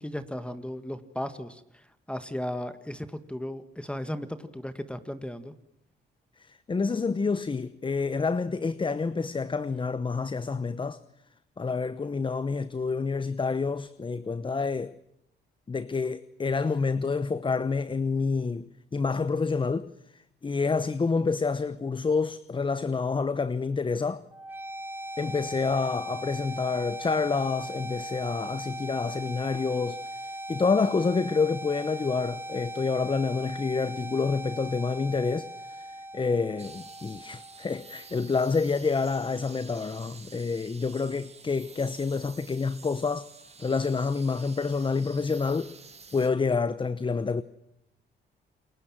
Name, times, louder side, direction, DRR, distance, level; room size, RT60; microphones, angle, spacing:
voice 1, 0.0-5.5, left 1 dB, 5° left, 1.7 m, -36 dB
voice 2, 6.4-11.0 11.6-15.0 15.7-19.9 20.4-24.2 25.2-35.9 36.1-43.3 43.6-45.7 46.1-47.4, left 4 dB, 25° left, 0.9 m, -28 dB
sound 1, 24.3-38.3, right 1 dB, 10° right, 0.9 m, -39 dB
sound 2, 36.6-46.3, right 5 dB, 30° right, 2.2 m, -50 dB
29.5 x 22.0 x 7.5 m
cardioid pair, 90°, 20 cm